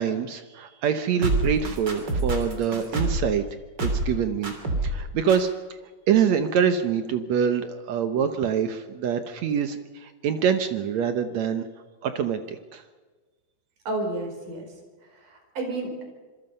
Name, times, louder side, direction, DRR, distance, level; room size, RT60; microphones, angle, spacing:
voice 1, 0.0-3.4 3.8-4.5 4.8-5.5 6.1-11.7 12.0-12.8, right 7 dB, 75° right, 9 dB, 1.6 m, -25 dB
sound 1, 1.2-3.3 3.8-4.2 4.4-5.0 5.3-5.4, right 2 dB, 30° right, 3.5 m, -26 dB
voice 2, 13.9-14.7 15.0-16.0, right 2 dB, 55° right, 4 dB, 6.0 m, -31 dB
26.5 x 23.0 x 5.5 m, 1.3 s
omnidirectional pair, 4.6 m